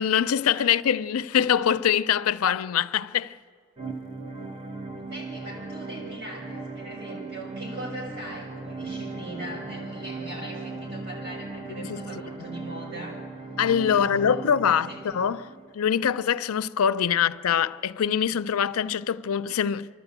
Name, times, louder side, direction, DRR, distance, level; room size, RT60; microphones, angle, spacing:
voice 1, 0.0-3.4 11.8-12.0 13.6-19.9, left 8 dB, 90° left, 0.5 m, -24 dB
sound 1, 3.8-15.7, right 3 dB, 25° right, 1.0 m, -38 dB
voice 2, 4.9-13.3 13.8-15.0 17.1-17.2, right 1 dB, 50° right, 6.8 m, -40 dB
27.5 x 12.0 x 8.1 m
head